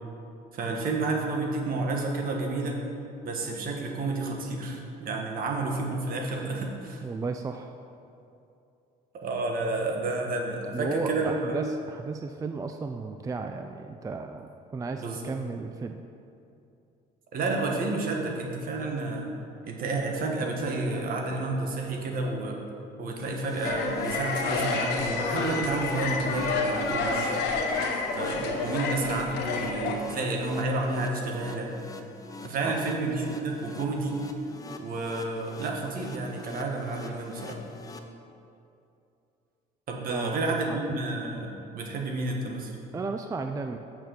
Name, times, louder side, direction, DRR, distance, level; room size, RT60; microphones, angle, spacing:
voice 1, 0.5-2.8 3.2-7.0 9.2-11.3 15.0-15.2 17.3-19.3 19.7-22.6 23.0-27.3 28.2-31.7 32.4-34.2 34.8-37.6 39.9-42.7, right 2 dB, 60° right, 1 dB, 1.5 m, -30 dB
voice 2, 7.0-7.7 10.7-16.0 32.6-32.8 40.1-40.4 40.7-41.0 42.9-43.8, right 4 dB, 20° right, 6 dB, 0.4 m, -34 dB
sound 1, 23.2-38.0, left 3 dB, 20° left, 0.6 m, -44 dB
sound 2, 23.6-29.9, left 4 dB, 80° left, 1.1 m, -29 dB
6.4 x 6.1 x 6.9 m, 2.6 s
cardioid pair, 110°, 17 cm